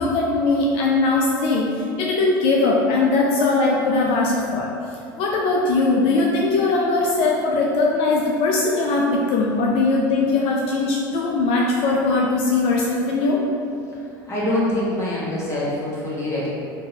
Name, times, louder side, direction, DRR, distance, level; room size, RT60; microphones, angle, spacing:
voice 1, 0.0-4.7 5.2-13.4, left 3 dB, 55° left, -2 dB, 0.4 m, -20 dB
voice 2, 14.2-16.5, left 1 dB, 25° left, -8 dB, 1.2 m, -24 dB
3.7 x 2.6 x 2.7 m, 2.6 s
hypercardioid pair, 80°, 11 cm